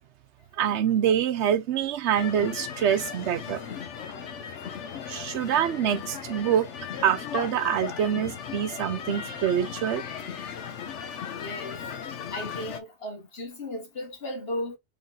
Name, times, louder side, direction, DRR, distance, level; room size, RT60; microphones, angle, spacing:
voice 1, 0.6-3.6 5.1-6.7 7.0-10.0, right 9 dB, 80° right, 0.9 m, -25 dB
sound 1, 2.2-12.8, left 7 dB, 80° left, 1.1 m, -37 dB
voice 2, 11.3-11.8 12.3-14.8, left 1 dB, 55° left, 1.8 m, -35 dB
4.0 x 3.6 x 3.7 m
omnidirectional pair, 1.2 m